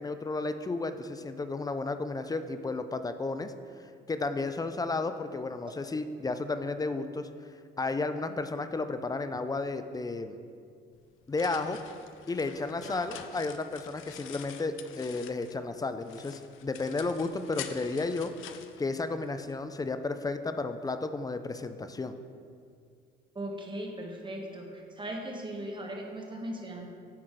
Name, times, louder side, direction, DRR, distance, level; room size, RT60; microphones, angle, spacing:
voice 1, 0.0-3.5 4.1-7.3 7.8-10.4 11.3-11.8 12.3-18.3 18.8-22.1, left 3 dB, 20° left, 10 dB, 0.4 m, -33 dB
sound 1, 10.9-15.7 16.0-19.6, left 10 dB, 85° left, 0.4 m, -46 dB
voice 2, 23.3-26.9, right 1 dB, 25° right, 0 dB, 1.2 m, -38 dB
8.7 x 3.9 x 4.8 m, 2.3 s
cardioid pair, 90°, 20 cm